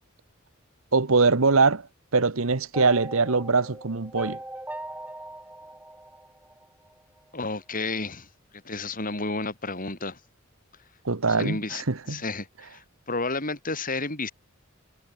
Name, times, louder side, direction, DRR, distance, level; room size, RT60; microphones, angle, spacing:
voice 1, 0.9-1.9 2.1-4.4 11.0-12.2, right 4 dB, 80° right, 1.2 m, -22 dB
sound 1, 2.7-6.9, right 1 dB, 10° right, 5.1 m, -39 dB
voice 2, 7.3-8.3 8.6-10.2 11.3-14.3, left 3 dB, 40° left, 7.8 m, -31 dB
head